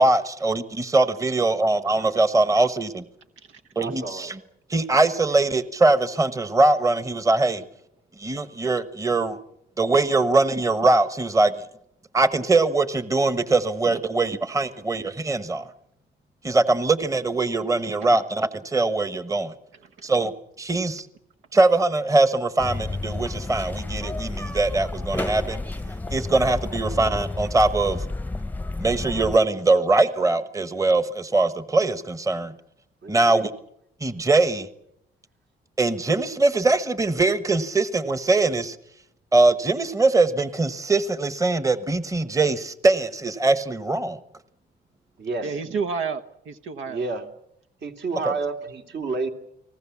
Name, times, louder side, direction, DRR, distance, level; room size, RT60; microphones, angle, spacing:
voice 1, 0.0-3.0 3.7-4.4 4.7-7.6 8.2-9.4 9.8-11.7 12.1-15.7 16.4-19.5 20.0-20.3 20.6-21.1 21.5-25.6 26.1-28.1 28.8-32.5 33.1-33.5 34.0-34.7 35.8-38.8 39.3-44.2 48.2-48.3, right 2 dB, 15° right, 12 dB, 1.3 m, -22 dB
voice 2, 3.8-4.3 33.0-33.5 45.2-45.6 46.9-47.3 47.8-49.3, right 3 dB, 60° right, 4 dB, 3.0 m, -30 dB
sound 1, 22.6-29.4, left 2 dB, 10° left, 0.8 m, -31 dB
voice 3, 45.4-47.0, right 5 dB, 80° right, 8 dB, 1.2 m, -31 dB
30.0 x 20.0 x 7.2 m, 0.77 s
cardioid pair, 90°, 20 cm